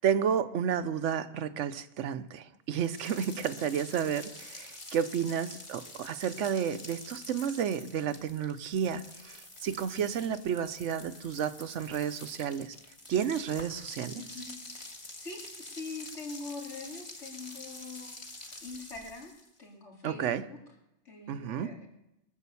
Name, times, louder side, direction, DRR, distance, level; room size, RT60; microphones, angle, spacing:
voice 1, 0.0-12.8 13.1-14.2 20.0-20.5 21.3-21.7, right 8 dB, 90° right, 12 dB, 1.0 m, -31 dB
sound 1, 2.7-19.6, left 2 dB, 25° left, 1.3 m, -47 dB
voice 2, 14.2-14.6 15.2-18.2 18.6-19.3 19.6-20.6 21.0-21.9, left 3 dB, 70° left, -1 dB, 3.2 m, -43 dB
21.5 x 7.4 x 6.9 m, 0.90 s
omnidirectional pair, 1.2 m